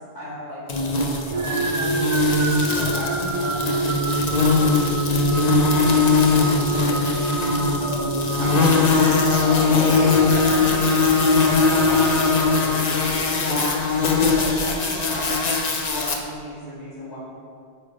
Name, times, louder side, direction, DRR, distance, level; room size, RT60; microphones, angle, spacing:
voice 1, 0.0-4.8 5.4-15.3 15.8-17.2, equal, 20° left, -13 dB, 2.2 m, -34 dB
sound 1, 0.7-16.1, left 4 dB, 45° left, 0.8 m, -20 dB
sound 2, 1.3-13.3, right 3 dB, 45° right, 0.5 m, -28 dB
8.8 x 4.5 x 5.0 m, 2.3 s
omnidirectional pair, 1.0 m